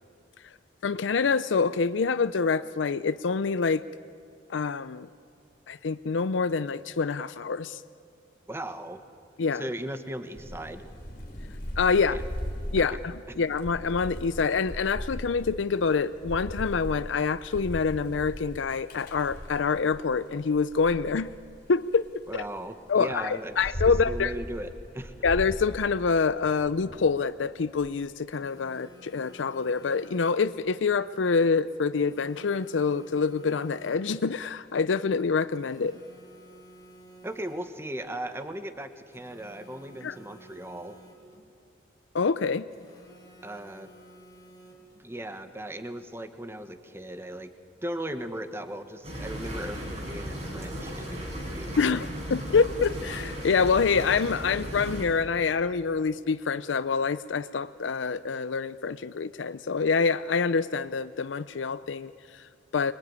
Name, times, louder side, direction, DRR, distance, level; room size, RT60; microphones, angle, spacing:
voice 1, 0.8-3.8 4.5-5.1 5.7-7.8 9.4-9.7 11.8-12.2 12.7-21.3 21.7-22.1 22.3-22.4 22.9-24.3 25.2-36.0 40.0-40.2 42.1-42.7 51.8-62.9, left 5 dB, 90° left, 14 dB, 0.5 m, -26 dB
voice 2, 8.5-9.0 9.5-10.9 12.1-12.2 12.8-13.0 13.3-13.4 22.3-23.6 24.0-25.1 37.2-41.0 43.4-43.9 45.0-47.5 47.8-51.8 52.5-52.6, right 1 dB, 15° right, 9 dB, 1.2 m, -37 dB
Thunder / Rain, 10.3-20.0 20.5-22.5 23.1-27.9, equal, 50° left, 3.8 m, -38 dB
Telephone, 28.3-30.7 31.9-34.3 35.5-37.9 39.1-41.5 42.7-45.1, right 1 dB, 25° left, 4.4 m, -53 dB
sound 1, 49.0-55.0, equal, 35° right, 5.4 m, -36 dB
25.5 x 21.5 x 9.6 m, 2.4 s
head